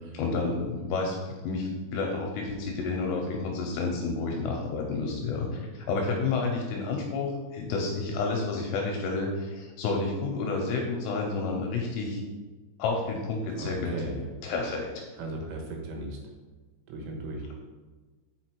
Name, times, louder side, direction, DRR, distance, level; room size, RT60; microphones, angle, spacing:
voice 1, 0.1-12.2 12.8-14.0 14.4-15.1, left 3 dB, 80° left, 0 dB, 2.6 m, -30 dB
voice 2, 13.5-14.3 15.2-16.2 16.9-17.5, right 2 dB, 85° right, 1 dB, 3.6 m, -36 dB
6.6 x 5.0 x 4.5 m, 1.3 s
omnidirectional pair, 5.6 m